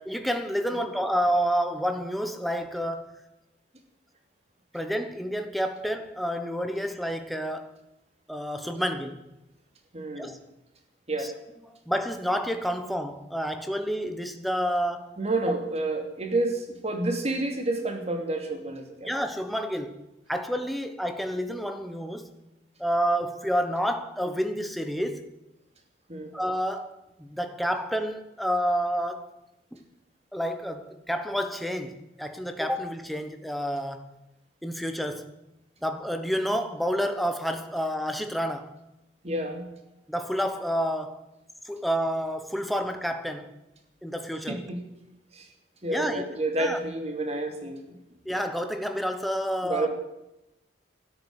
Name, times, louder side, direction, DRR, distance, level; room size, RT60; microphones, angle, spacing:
voice 1, 0.1-3.2 4.7-7.8 8.3-9.3 10.2-10.4 11.2-11.3 11.9-15.2 19.0-22.4 22.8-25.3 26.3-29.3 29.7-29.8 30.3-34.2 34.6-35.3 35.8-38.8 40.1-41.2 41.6-43.6 44.0-44.7 45.9-46.3 46.6-46.8 48.2-49.9, equal, ahead, 1.2 m, -29 dB
voice 2, 9.9-10.3 11.1-11.3 15.2-19.1 26.1-26.3 39.2-39.7 44.5-44.9 45.3-45.5 45.8-47.9 49.6-49.9, right 2 dB, 35° right, 2.8 m, -29 dB
13.0 x 10.5 x 9.6 m
head